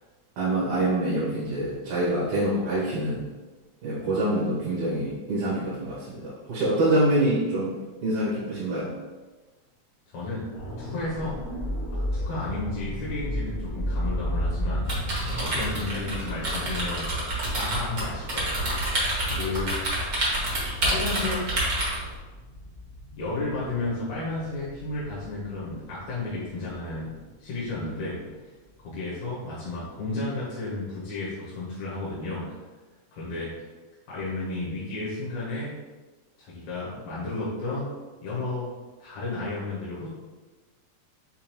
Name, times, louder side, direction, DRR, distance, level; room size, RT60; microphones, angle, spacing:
voice 1, 0.4-3.2 3.8-7.8 8.0-8.9, right 1 dB, 75° right, -8 dB, 2.3 m, -25 dB
voice 2, 10.1-10.5 10.8-11.4 11.9-14.9 15.3-17.1 17.5-19.8 20.8-21.5 23.2-27.1 27.4-28.2 28.8-32.5 33.1-33.5 34.1-35.7 36.4-37.9 38.2-38.7 39.0-40.1, left 2 dB, 75° left, -8 dB, 2.4 m, -33 dB
sound 1, 10.5-28.4 28.8-29.0, equal, 60° left, 0.9 m, -35 dB
sound 2, 14.8-22.1, right 1 dB, 60° right, 0.8 m, -28 dB
7.0 x 2.4 x 2.9 m, 1.3 s
omnidirectional pair, 3.3 m